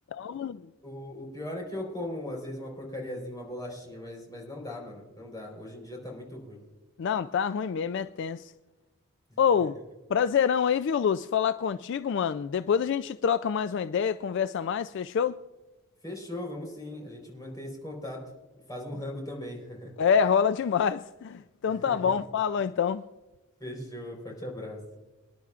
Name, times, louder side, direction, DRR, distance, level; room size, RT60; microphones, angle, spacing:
voice 1, 0.1-0.6 7.0-8.5 9.4-9.8 10.1-15.4 20.0-23.0, left 7 dB, 55° left, 0.3 m, -26 dB
voice 2, 0.8-6.6 9.3-9.7 16.0-18.2 18.7-20.0 21.7-22.0 23.6-24.8, left 1 dB, 15° left, 4.1 m, -39 dB
26.0 x 10.5 x 2.4 m
head